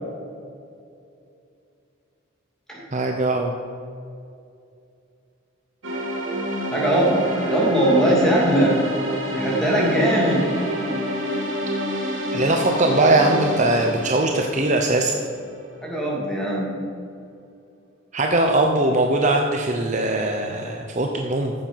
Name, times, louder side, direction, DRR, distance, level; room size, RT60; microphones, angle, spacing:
voice 1, 2.9-3.5 12.3-15.1 18.1-21.5, right 2 dB, 35° right, 3 dB, 0.7 m, -20 dB
sound 1, 5.8-15.8, equal, 70° right, 3.0 m, -28 dB
voice 2, 6.7-7.2 7.5-8.8 9.3-10.5 15.8-16.7, right 1 dB, 5° left, -4 dB, 2.8 m, -20 dB
14.0 x 7.4 x 5.6 m, 2.5 s
head